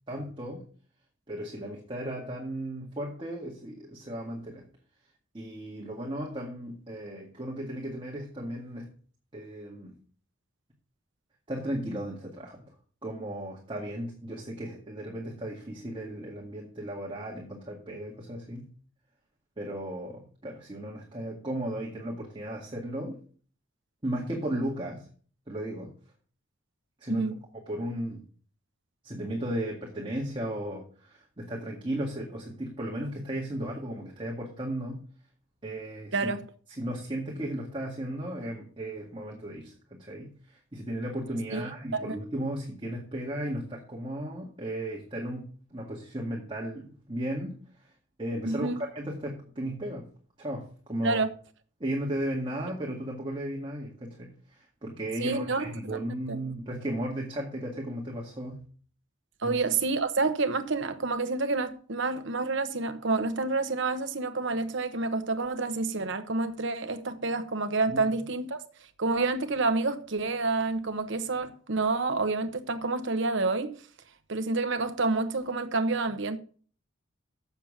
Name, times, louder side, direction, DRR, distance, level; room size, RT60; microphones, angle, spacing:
voice 1, 0.1-0.6 1.3-4.7 5.3-8.9 9.3-9.9 11.5-12.7 13.0-18.7 19.6-23.2 24.0-25.1 25.5-25.9 27.0-27.3 27.7-28.2 29.0-35.1 35.6-36.3 36.8-47.6 48.2-50.1 50.4-51.2 51.8-58.7 59.4-59.6 67.9-68.1, right 1 dB, 25° right, 2.0 m, -35 dB
voice 2, 48.4-48.8 51.0-51.3 55.2-56.0 56.3-56.4 59.4-68.6 69.0-73.7 74.3-76.4, right 3 dB, 65° right, 1.1 m, -28 dB
7.4 x 7.1 x 7.2 m
head